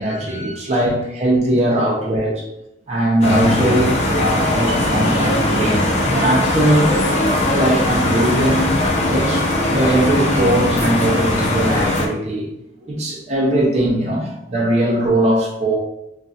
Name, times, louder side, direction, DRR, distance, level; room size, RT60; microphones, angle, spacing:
voice 1, 0.0-2.5 2.9-6.9 7.4-12.5 12.8-15.8, right 1 dB, 35° right, -2 dB, 0.6 m, -20 dB
sound 1, 3.2-12.1, left 1 dB, 35° left, 0.5 m, -19 dB
2.4 x 2.3 x 3.9 m, 0.83 s
head